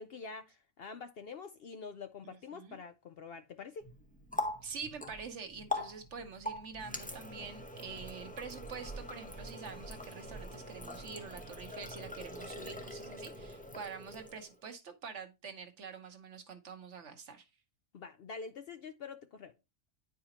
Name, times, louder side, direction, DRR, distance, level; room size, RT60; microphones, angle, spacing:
voice 1, 0.0-3.9 17.9-19.5, left 5 dB, 60° left, 0.7 m, -46 dB
voice 2, 2.2-2.8 4.6-17.5, right 5 dB, 65° right, 1.3 m, -46 dB
Water tap faucet, 3.8-14.6, left 1 dB, 10° left, 0.6 m, -43 dB
9.8 x 4.9 x 2.9 m
omnidirectional pair, 1.4 m